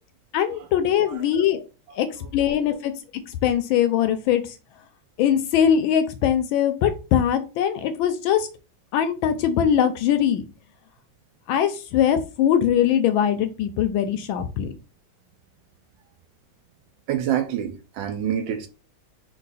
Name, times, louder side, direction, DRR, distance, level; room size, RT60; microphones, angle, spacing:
voice 1, 0.3-1.6 2.0-2.1 2.3-2.9 3.3-4.6 5.2-8.5 8.9-10.4 11.5-14.7, left 9 dB, 75° left, 1.2 m, -21 dB
voice 2, 17.1-18.7, right 10 dB, 75° right, 1.2 m, -27 dB
4.5 x 2.3 x 4.0 m
omnidirectional pair, 2.4 m